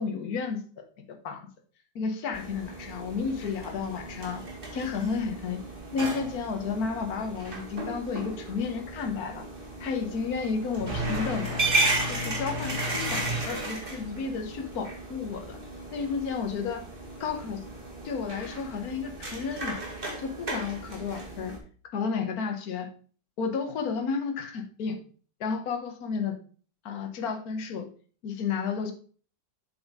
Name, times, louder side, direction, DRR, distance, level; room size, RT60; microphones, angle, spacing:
voice 1, 0.0-1.4 1.9-4.4 4.7-5.6 5.9-9.5 9.8-11.7 12.1-15.6 15.9-16.8 17.2-17.6 18.0-19.8 20.2-21.5 21.9-22.9 23.4-25.0 25.4-26.4 26.8-27.9 28.2-28.9, left 5 dB, 60° left, 4 dB, 1.6 m, -32 dB
sound 1, 2.3-21.6, right 2 dB, 30° right, 1.9 m, -34 dB
7.6 x 7.2 x 3.5 m, 0.41 s
omnidirectional pair, 1.8 m